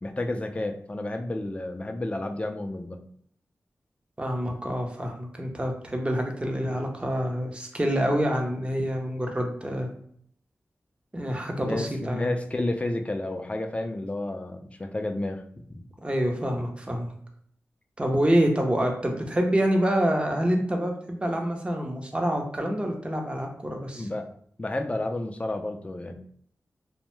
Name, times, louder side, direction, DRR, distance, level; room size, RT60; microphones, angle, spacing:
voice 1, 0.0-3.0 11.2-11.3 11.6-15.4 15.7-15.8 23.9-24.3 24.6-26.1, left 2 dB, 25° left, 5 dB, 0.4 m, -31 dB
voice 2, 4.2-9.9 11.1-12.3 16.0-17.1 18.0-24.1, equal, 20° right, 2 dB, 0.6 m, -27 dB
2.6 x 2.1 x 3.0 m, 0.64 s
cardioid pair, 55°, 5 cm